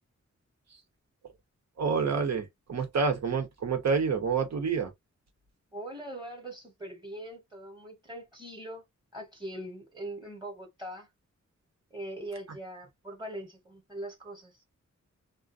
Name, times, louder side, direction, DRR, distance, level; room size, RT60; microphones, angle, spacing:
voice 1, 1.8-4.9, right 5 dB, 65° right, 0.8 m, -28 dB
voice 2, 5.7-8.8 9.1-11.1 11.9-14.5, right 1 dB, 15° right, 1.0 m, -41 dB
2.3 x 2.2 x 2.5 m
wide cardioid pair, 90°, 29 cm